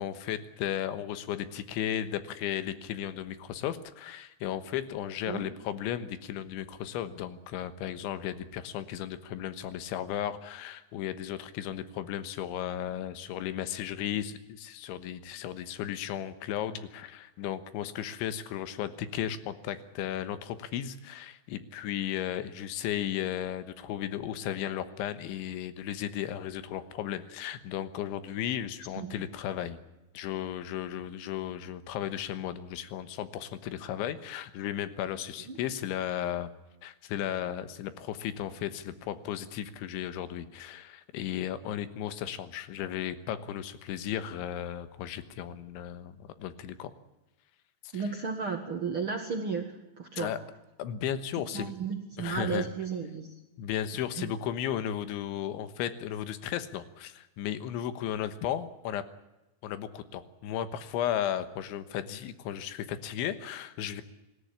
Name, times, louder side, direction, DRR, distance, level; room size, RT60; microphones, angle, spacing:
voice 1, 0.0-29.8 30.2-36.5 36.8-46.9 47.9-48.0 50.2-50.4 50.8-51.7 52.2-52.7 53.6-59.0 59.6-64.0, left 10 dB, 85° left, 12 dB, 3.6 m, -35 dB
voice 2, 47.9-50.3 51.5-53.3 54.2-54.3, right 5 dB, 60° right, 4 dB, 1.4 m, -34 dB
26.0 x 14.0 x 10.0 m, 0.97 s
omnidirectional pair, 5.3 m